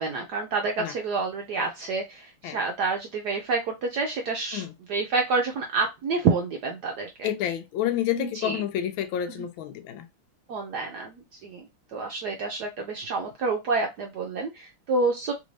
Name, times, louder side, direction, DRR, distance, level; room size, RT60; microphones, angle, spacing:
voice 1, 0.0-4.6 4.9-7.3 8.2-8.6 10.5-11.7 11.9-15.3, right 4 dB, 75° right, 0.9 m, -28 dB
voice 2, 7.2-10.1, left 11 dB, 75° left, 1.3 m, -29 dB
3.4 x 2.6 x 3.1 m
omnidirectional pair, 2.3 m